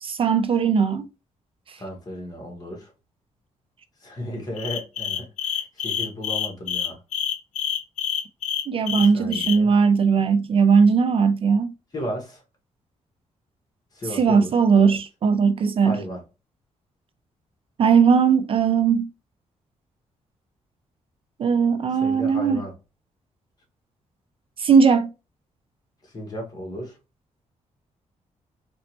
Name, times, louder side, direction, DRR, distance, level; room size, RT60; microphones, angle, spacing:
voice 1, 0.0-1.1 1.7-1.8 8.7-11.7 14.1-16.0 17.8-19.1 21.4-22.6 24.6-25.1, right 6 dB, 45° right, 0.4 m, -19 dB
voice 2, 1.7-2.9 4.0-7.0 8.9-9.7 11.9-12.4 13.9-15.0 15.8-16.2 21.9-22.7 26.0-27.0, equal, 30° left, 1.7 m, -34 dB
sound 1, 4.6-9.6, left 9 dB, 80° left, 0.6 m, -27 dB
4.1 x 3.1 x 2.9 m
cardioid pair, 130°, 13 cm